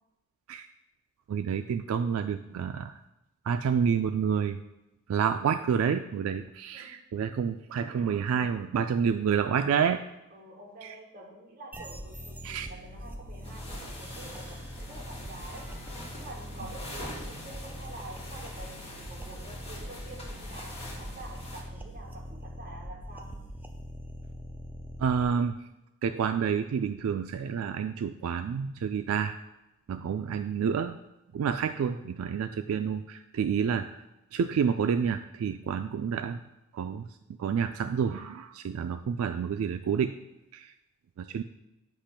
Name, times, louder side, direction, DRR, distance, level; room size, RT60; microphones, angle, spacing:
voice 1, 1.3-3.0 3.4-4.6 5.1-10.0 10.8-11.0 12.4-12.7 25.0-25.7 26.0-29.4 29.9-31.0 31.3-34.0 34.3-36.4 36.7-37.1 37.4-40.1 40.5-40.7 41.2-41.4, right 7 dB, 80° right, 9 dB, 0.3 m, -29 dB
voice 2, 6.7-7.4 10.3-15.7 16.2-23.5, right 2 dB, 45° right, 0 dB, 1.2 m, -47 dB
sound 1, 11.7-25.3, equal, 10° right, 0.4 m, -42 dB
sound 2, 13.4-21.6, left 1 dB, 30° left, 1.7 m, -44 dB
8.5 x 2.9 x 5.7 m, 0.93 s
head